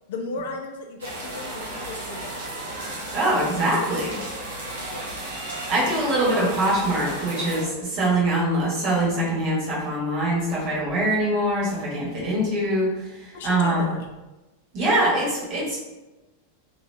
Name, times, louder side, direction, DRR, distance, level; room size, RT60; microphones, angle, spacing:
voice 1, 0.1-2.4 4.9-5.1 13.3-14.1, left 3 dB, 55° left, 3 dB, 0.4 m, -35 dB
sound 1, 1.0-7.6, right 1 dB, 70° right, 0.8 m, -34 dB
voice 2, 3.1-4.2 5.7-12.9 13.2-13.9 14.7-15.8, right 1 dB, 40° right, -5 dB, 1.3 m, -23 dB
2.9 x 2.5 x 3.3 m, 1.1 s
figure-of-eight pair, 90°, 0 cm